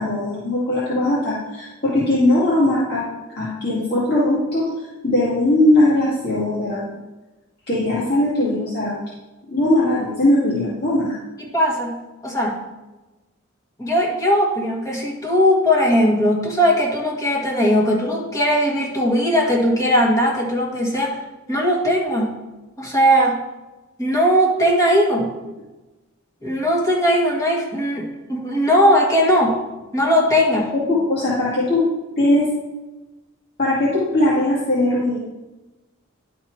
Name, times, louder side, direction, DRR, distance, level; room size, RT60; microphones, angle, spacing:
voice 1, 0.0-3.0 3.4-4.6 5.0-6.9 7.7-8.9 9.5-11.2 30.7-31.8 32.2-32.5 33.6-35.2, left 1 dB, 55° left, -9 dB, 2.2 m, -19 dB
voice 2, 11.4-12.6 13.8-21.2 21.5-22.3 22.8-23.4 24.0-25.3 26.4-29.6 29.9-30.7, equal, 15° left, -3 dB, 1.7 m, -19 dB
11.0 x 4.3 x 4.7 m, 1.1 s
head